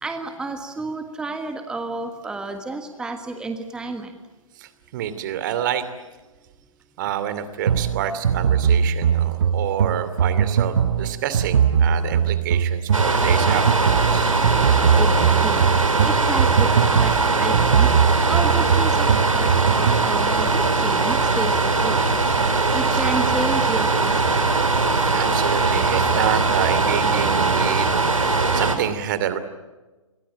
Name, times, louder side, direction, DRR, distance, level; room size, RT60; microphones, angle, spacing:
voice 1, 0.0-4.2 15.0-17.9 18.3-24.6, right 3 dB, 5° right, 7 dB, 1.5 m, -31 dB
voice 2, 4.6-5.8 7.0-14.4 22.9-23.0 24.7-27.9 28.5-29.4, right 10 dB, 35° right, 12 dB, 2.7 m, -28 dB
sound 1, 7.7-20.1, right 7 dB, 50° right, 1.1 m, -21 dB
sound 2, 12.9-28.8, right 3 dB, 75° right, 4.6 m, -20 dB
28.0 x 23.0 x 8.9 m, 1.2 s
figure-of-eight pair, 130°, 17 cm